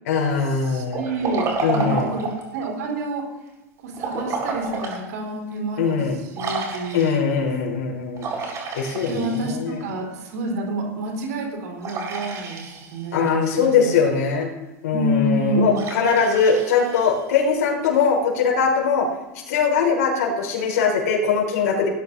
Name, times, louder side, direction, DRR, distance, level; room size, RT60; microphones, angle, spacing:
voice 1, 0.1-1.0 1.6-2.1 5.8-6.2 6.9-8.3 8.7-9.8 13.1-14.5 14.8-19.1 19.5-21.9, left 5 dB, 85° left, -1 dB, 3.8 m, -21 dB
voice 2, 0.7-3.2 3.8-6.0 6.3-7.1 8.9-13.9 14.9-15.8, right 2 dB, 85° right, 1 dB, 4.0 m, -28 dB
Liquid, 0.9-2.5 3.9-5.0 5.5-5.6 6.4-7.3 8.2-9.8 11.8-13.2 15.7-17.4, right 4 dB, 40° right, 4.6 m, -30 dB
18.5 x 12.0 x 2.7 m, 1.0 s
supercardioid pair, 125°, 9 cm